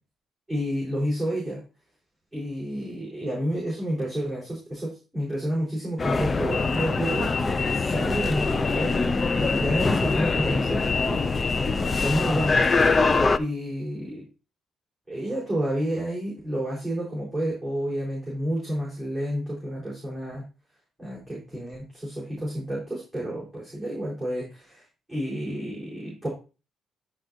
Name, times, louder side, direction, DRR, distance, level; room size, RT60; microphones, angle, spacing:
voice 1, 0.5-1.6 2.3-9.0 9.4-11.2 11.9-12.7 13.4-14.3 15.1-20.4 21.0-24.8 25.1-26.3, equal, ahead, -7 dB, 4.6 m, -30 dB
sound 1, 6.0-13.4, left 4 dB, 30° left, 0.5 m, -23 dB
12.0 x 4.7 x 2.7 m, 0.32 s
cardioid pair, 90°, 0 cm